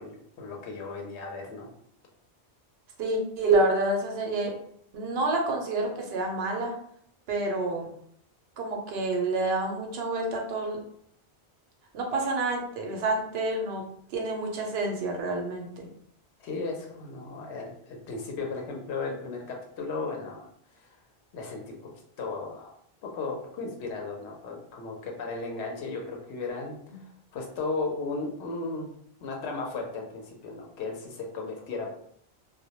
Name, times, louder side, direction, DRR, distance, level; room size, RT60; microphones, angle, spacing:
voice 1, 0.0-1.7 16.4-20.5 21.3-21.7 22.2-22.8 23.1-27.0 27.3-28.9 29.2-31.9, left 3 dB, 90° left, 1 dB, 0.9 m, -35 dB
voice 2, 3.0-4.5 4.9-6.8 7.3-7.9 8.6-10.8 11.9-13.8 14.1-15.9 26.9-27.0, right 2 dB, 75° right, 1 dB, 0.8 m, -28 dB
2.1 x 2.0 x 2.8 m, 0.67 s
omnidirectional pair, 1.1 m